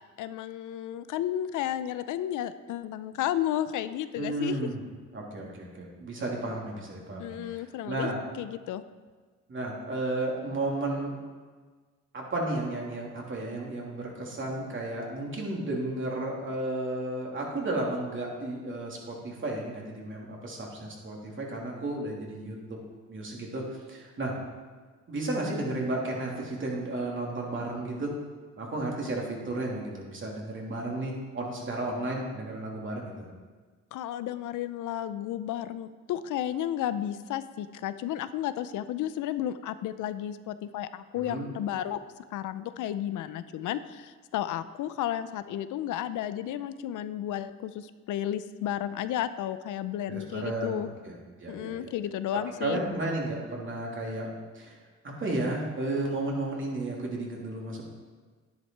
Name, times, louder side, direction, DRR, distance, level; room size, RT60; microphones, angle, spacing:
voice 1, 0.2-4.6 7.2-8.1 8.4-8.8 33.9-42.0 42.3-50.9 51.5-52.8, left 11 dB, 80° left, 13 dB, 0.6 m, -33 dB
voice 2, 4.2-4.8 5.1-8.2 9.5-11.2 12.1-22.8 23.1-24.3 25.1-28.1 28.6-33.3 41.1-41.5 50.1-51.1 51.4-51.9 52.6-54.3 54.5-54.8 55.0-57.8, right 2 dB, 40° right, -2 dB, 3.0 m, -33 dB
10.5 x 10.5 x 4.6 m, 1.4 s
cardioid pair, 90°, 30 cm